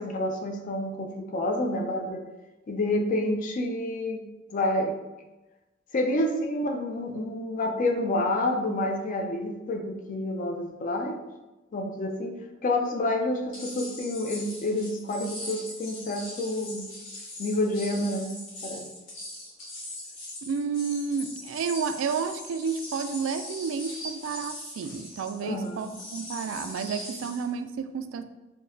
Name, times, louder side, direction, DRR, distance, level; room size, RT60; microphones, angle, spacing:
voice 1, 0.0-2.2 2.7-4.2 4.5-5.0 5.9-11.2 11.7-16.9 17.4-18.3 18.6-18.8 25.4-25.9, left 1 dB, 45° left, 4 dB, 0.4 m, -28 dB
sound 1, 13.5-27.5, left 1 dB, 85° left, 1.3 m, -41 dB
voice 2, 20.4-28.2, right 6 dB, 80° right, 10 dB, 0.3 m, -31 dB
3.7 x 2.7 x 2.7 m, 1.1 s
head